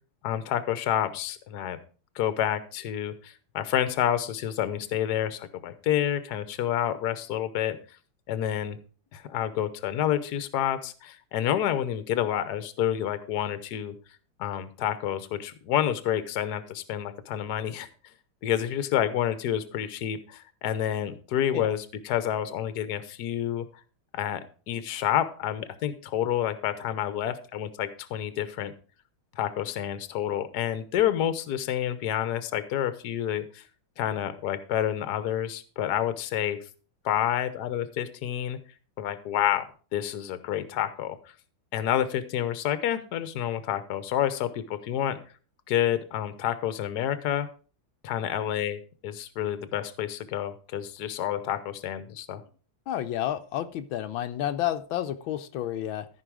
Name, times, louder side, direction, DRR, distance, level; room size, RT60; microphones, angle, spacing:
voice 1, 0.2-1.8 2.1-7.8 8.3-8.8 9.1-13.9 14.4-17.9 18.4-23.7 24.1-24.4 24.7-28.7 29.3-33.6 34.0-36.6 37.0-38.6 39.0-39.7 39.9-41.2 41.7-45.2 45.7-47.5 48.0-52.4, left 11 dB, 60° left, 12 dB, 1.3 m, -29 dB
voice 2, 52.9-56.1, left 12 dB, 80° left, 9 dB, 1.4 m, -30 dB
14.0 x 5.4 x 4.7 m, 0.37 s
omnidirectional pair, 2.2 m